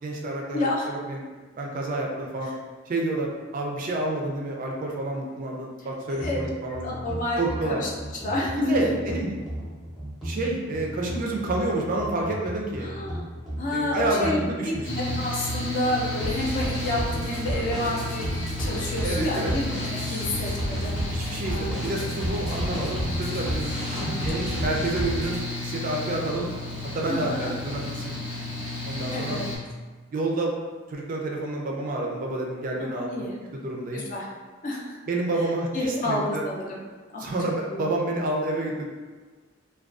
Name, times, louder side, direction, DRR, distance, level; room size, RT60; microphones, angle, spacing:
voice 1, 0.0-0.6 0.9-1.2 1.6-2.5 2.9-3.3 3.5-6.9 7.4-7.8 8.6-9.3 10.2-12.9 13.7-15.1 19.0-19.5 21.1-23.7 24.0-26.5 26.9-28.2 28.8-29.4 30.1-30.5 30.9-33.1 33.6-34.1 35.1-36.4 37.2-38.9, right 2 dB, 45° right, -1 dB, 0.3 m, -29 dB
voice 2, 0.5-0.9 6.2-6.4 6.8-7.9 8.2-8.9 12.8-13.2 13.6-18.3 18.6-21.0 21.5-21.8 23.9-24.5 27.1-27.5 29.1-29.5 32.8-33.4 33.9-34.3 34.6-34.9 35.7-36.8 37.1-37.3 37.7-37.8, left 1 dB, 40° left, -3 dB, 0.4 m, -29 dB
sound 1, 6.2-25.4, equal, ahead, 0.6 m, -33 dB
Mechanical fan, 14.8-29.6, left 2 dB, 75° left, 0.8 m, -33 dB
2.4 x 2.2 x 2.3 m, 1.4 s
head